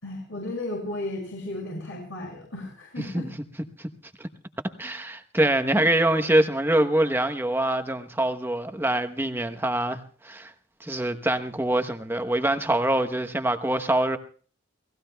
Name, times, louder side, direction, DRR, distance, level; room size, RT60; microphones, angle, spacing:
voice 1, 0.0-3.3 5.7-5.8, left 1 dB, 70° left, 6.4 m, -34 dB
voice 2, 3.0-3.3 3.8-3.9 4.2-4.3 4.8-10.5 10.8-14.2, right 1 dB, 10° right, 1.0 m, -24 dB
29.5 x 18.5 x 2.3 m
head